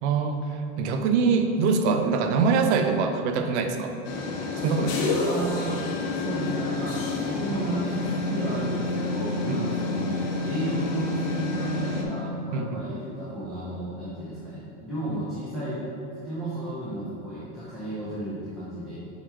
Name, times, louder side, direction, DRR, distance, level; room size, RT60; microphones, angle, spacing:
voice 1, 0.0-3.9 4.6-5.1 9.5-9.7 12.5-12.8, right 5 dB, 65° right, 6 dB, 0.7 m, -24 dB
sound 1, 4.0-12.0, left 3 dB, 85° left, 1.2 m, -29 dB
voice 2, 5.1-5.8 6.1-10.2 10.4-15.8 16.2-18.9, right 1 dB, ahead, -14 dB, 1.3 m, -33 dB
6.2 x 4.1 x 4.6 m, 2.7 s
supercardioid pair, 155°, 37 cm